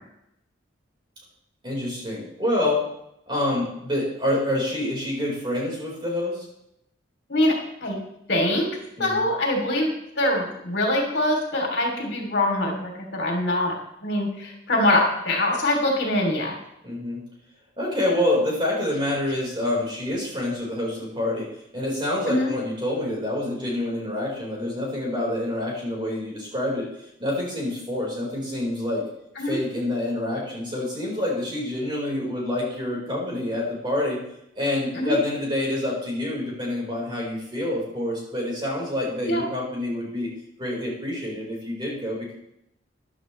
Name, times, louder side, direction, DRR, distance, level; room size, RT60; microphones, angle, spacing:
voice 1, 1.6-2.9 3.3-6.4 9.0-9.3 16.8-17.2 17.8-26.9 27.2-29.1 29.4-34.2 34.6-40.3 40.6-42.3, left 1 dB, 25° right, -3 dB, 4.3 m, -27 dB
voice 2, 8.3-8.7 9.0-9.9 10.2-13.7 14.0-16.5 22.3-22.5 29.4-29.6 34.9-35.2 39.2-39.4, left 1 dB, 65° left, 1 dB, 3.1 m, -23 dB
14.5 x 11.0 x 3.2 m, 0.80 s
head